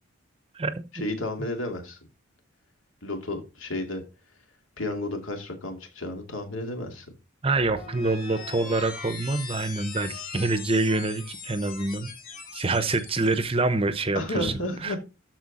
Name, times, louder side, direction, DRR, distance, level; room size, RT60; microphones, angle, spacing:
voice 1, 0.9-2.0 3.0-4.0 4.8-7.1 14.1-15.0, left 1 dB, 70° left, 2.4 m, -32 dB
voice 2, 7.4-12.1 12.5-14.5 14.8-15.0, right 2 dB, 25° right, 0.7 m, -26 dB
sound 1, 7.5-13.4, left 5 dB, 45° left, 2.6 m, -40 dB
12.5 x 4.5 x 4.2 m
head